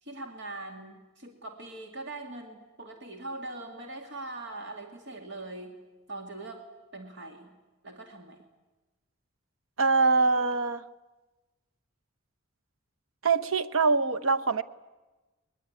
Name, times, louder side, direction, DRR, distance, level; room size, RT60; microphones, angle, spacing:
voice 1, 0.0-5.8 6.1-6.7 6.9-7.5 7.8-8.4, right 2 dB, 60° right, 4 dB, 2.4 m, -41 dB
voice 2, 9.8-10.8 13.2-14.6, right 4 dB, 80° right, 11 dB, 1.0 m, -24 dB
22.5 x 21.0 x 9.7 m, 1.1 s
head